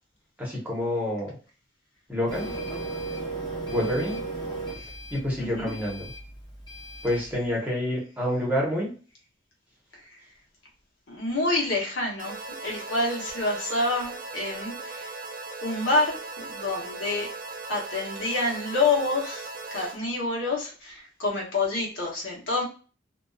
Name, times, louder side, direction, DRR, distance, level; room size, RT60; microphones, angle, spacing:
voice 1, 0.4-1.3 2.1-2.5 3.7-4.2 5.1-6.1 7.0-8.9, left 1 dB, 10° right, -4 dB, 0.9 m, -28 dB
Printer, 2.3-7.3, right 2 dB, 20° left, 0.9 m, -35 dB
voice 2, 5.4-5.7 11.1-12.3 12.6-15.1 15.6-17.3 17.7-22.6, left 2 dB, 70° left, -2 dB, 0.9 m, -27 dB
sound 1, 12.2-20.0, right 3 dB, 45° right, 0.4 m, -38 dB
2.6 x 2.2 x 2.3 m, 0.36 s
head